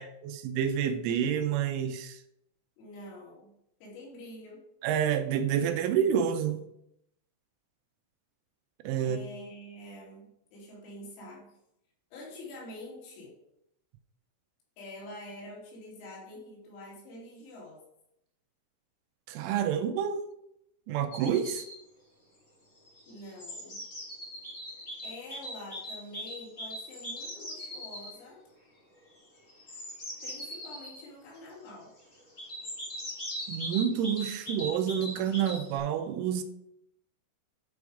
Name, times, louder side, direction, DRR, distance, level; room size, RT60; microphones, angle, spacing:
voice 1, 0.0-2.2 4.8-6.7 8.8-9.2 19.3-20.2 20.9-21.6 33.5-36.4, right 8 dB, 85° right, 3.0 m, -28 dB
voice 2, 2.8-3.5 3.8-4.6 9.0-11.6 12.1-13.3 14.8-17.8 23.1-23.8 25.0-28.4 30.2-31.9, left 1 dB, 85° left, 5.5 m, -46 dB
sound 1, 21.1-21.8 22.9-28.1 29.5-31.0 32.4-35.8, equal, 70° left, 0.6 m, -40 dB
11.5 x 4.9 x 4.9 m
omnidirectional pair, 5.9 m